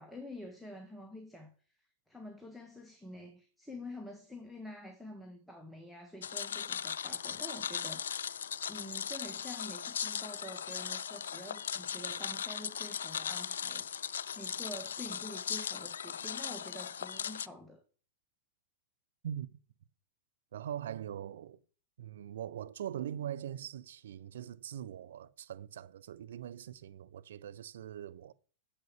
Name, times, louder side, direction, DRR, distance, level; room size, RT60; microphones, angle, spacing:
voice 1, 0.0-1.5 2.1-17.8, left 1 dB, ahead, 1.6 m, -48 dB
sound 1, 6.2-17.5, left 8 dB, 75° left, 0.4 m, -38 dB
voice 2, 20.5-21.6 22.0-28.3, right 10 dB, 70° right, 0.7 m, -42 dB
7.8 x 6.6 x 7.2 m
hypercardioid pair, 105°, 0 cm